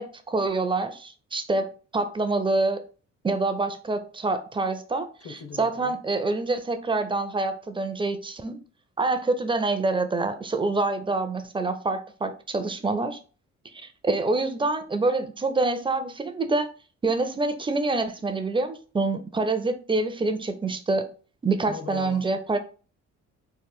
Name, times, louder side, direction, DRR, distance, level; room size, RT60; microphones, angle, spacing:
voice 1, 0.0-1.7 1.9-2.8 3.2-5.1 5.6-8.6 9.0-13.2 14.0-16.7 17.0-21.0 21.4-22.6, right 3 dB, 15° right, 0.4 m, -26 dB
voice 2, 5.2-6.0 21.7-22.3, left 5 dB, 50° left, 0.7 m, -40 dB
3.2 x 2.1 x 3.5 m
cardioid pair, 90°, 30 cm